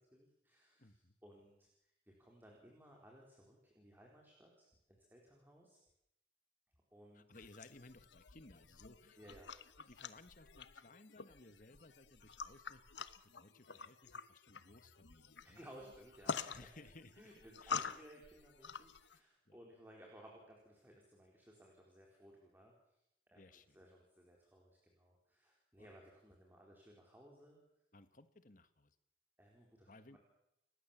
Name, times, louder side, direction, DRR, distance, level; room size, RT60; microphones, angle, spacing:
voice 1, 0.1-0.9 1.2-5.8 6.9-7.2 9.2-9.5 15.4-16.8 17.2-22.9 23.3-23.4 23.7-27.6 29.4-30.2, equal, 10° right, -1 dB, 4.3 m, -60 dB
voice 2, 0.8-1.2 7.1-9.4 9.8-12.8 13.2-15.6 16.3-18.0 19.4-19.6 23.3-23.8 25.8-25.9 27.9-29.0 29.9-30.2, left 2 dB, 45° left, 12 dB, 1.5 m, -60 dB
sound 1, 7.3-19.2, left 5 dB, 80° left, 1.1 m, -48 dB
30.0 x 16.0 x 7.4 m, 0.82 s
head